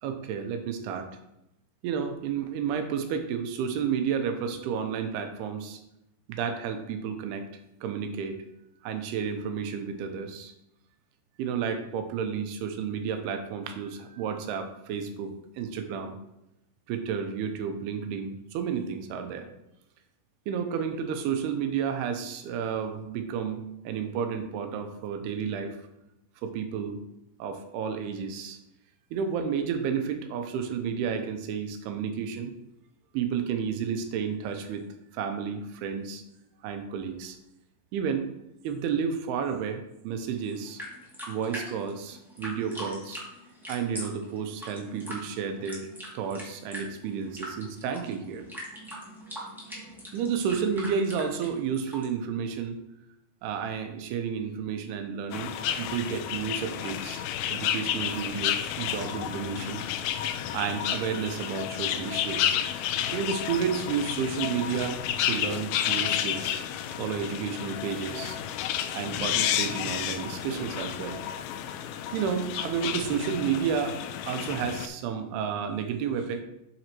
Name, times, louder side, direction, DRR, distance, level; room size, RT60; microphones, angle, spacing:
voice 1, 0.0-1.1 1.8-5.8 6.3-7.5 7.8-8.4 8.8-10.5 11.4-16.2 16.9-19.5 20.5-25.8 26.4-27.0 27.4-28.6 29.1-32.5 33.1-34.9 35.1-36.2 36.6-37.4 37.9-38.3 38.6-40.8 41.3-43.2 43.7-45.9 46.1-48.5 50.1-52.8 53.4-57.2 57.5-60.2 60.5-62.7 63.1-66.6 67.0-68.4 68.9-71.2 72.1-74.0 74.2-76.4, right 7 dB, 85° right, 7 dB, 2.6 m, -31 dB
sound 1, 40.4-52.1, equal, ahead, 0.6 m, -42 dB
sound 2, 55.3-74.9, left 10 dB, 85° left, 2.1 m, -31 dB
7.9 x 6.9 x 3.0 m, 0.86 s
omnidirectional pair, 4.8 m